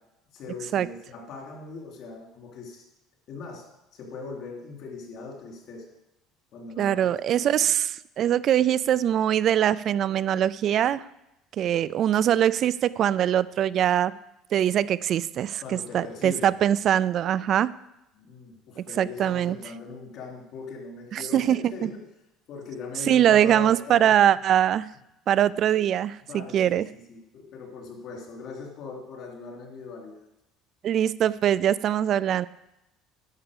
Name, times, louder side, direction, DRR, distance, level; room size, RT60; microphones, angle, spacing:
voice 1, 0.3-2.8 3.3-3.6 3.9-5.9 6.5-7.1 7.4-7.7 15.6-16.5 18.2-22.0 22.5-24.1 26.3-30.2, left 4 dB, 50° left, 0 dB, 3.0 m, -40 dB
voice 2, 6.8-11.0 11.6-14.1 14.5-17.7 18.8-19.6 21.1-21.9 23.1-24.9 25.3-26.9 30.8-32.5, right 10 dB, 40° right, 18 dB, 0.3 m, -22 dB
11.0 x 5.9 x 6.8 m, 0.91 s
cardioid pair, 155°, 0 cm